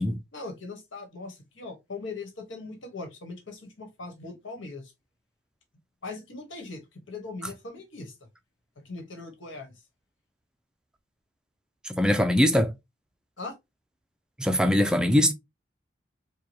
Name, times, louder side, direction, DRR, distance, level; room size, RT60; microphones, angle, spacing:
voice 1, 0.3-4.9 6.0-8.1 8.8-9.7 12.1-12.2 13.4-13.6, left 3 dB, 80° left, 1.4 m, -40 dB
voice 2, 11.8-12.7 14.4-15.3, equal, 5° right, 0.4 m, -22 dB
4.7 x 2.3 x 2.9 m
head